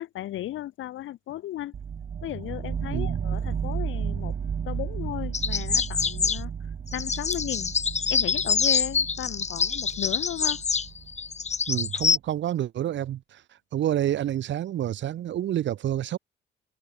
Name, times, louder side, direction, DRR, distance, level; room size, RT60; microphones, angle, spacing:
voice 1, 0.0-1.8 2.2-4.4 4.6-7.7 8.1-10.6, left 13 dB, 80° left, 4.1 m, -35 dB
sound 1, 1.7-11.5, right 7 dB, 45° right, 1.8 m, -33 dB
sound 2, 5.3-6.4 6.9-12.2, left 5 dB, 35° left, 1.6 m, -26 dB
voice 2, 11.7-13.4 13.7-16.2, right 12 dB, 65° right, 1.1 m, -28 dB
cardioid pair, 90°, 20 cm